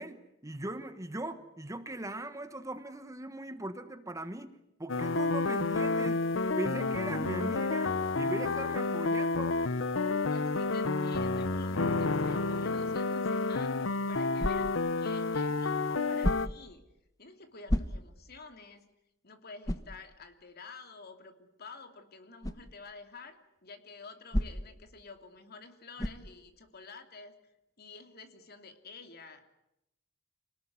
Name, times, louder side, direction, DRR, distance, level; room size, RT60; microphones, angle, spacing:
voice 1, 0.0-6.3 6.6-9.6, right 1 dB, 15° right, 10 dB, 1.3 m, -40 dB
sound 1, 4.9-16.5, left 3 dB, 75° left, 1.0 m, -30 dB
voice 2, 10.3-16.8 17.2-18.9 19.2-27.3 27.8-29.4, left 4 dB, 55° left, 7 dB, 2.9 m, -50 dB
sound 2, 14.4-14.9 16.2-16.7 17.7-18.3 18.8-18.9 19.6-20.0 22.4-22.7 24.3-24.8 26.0-26.3, equal, 20° left, 1.2 m, -32 dB
28.0 x 19.0 x 9.7 m, 0.86 s
head